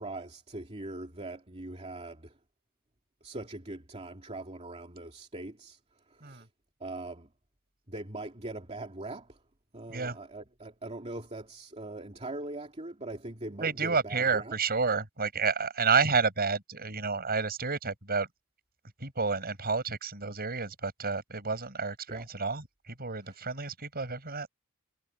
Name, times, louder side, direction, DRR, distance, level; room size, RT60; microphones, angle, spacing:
voice 1, 0.0-2.4 3.2-5.8 6.1-6.5 6.8-7.3 7.9-9.4 9.7-14.5 22.1-22.2 23.2-23.4, right 2 dB, 30° right, 2.6 m, -41 dB
voice 2, 13.6-18.3 19.0-24.5, right 5 dB, 45° right, 7.9 m, -30 dB
head